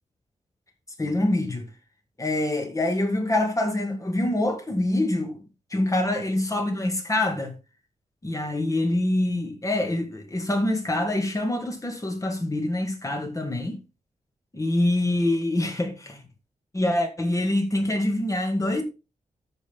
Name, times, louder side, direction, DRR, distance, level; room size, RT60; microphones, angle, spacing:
voice 1, 1.0-1.7 2.2-5.4 5.7-7.5 8.2-13.8 14.5-16.2 16.7-18.8, left 1 dB, 25° left, 2.1 m, -25 dB
13.5 x 5.4 x 3.6 m
wide cardioid pair, 100°, 14 cm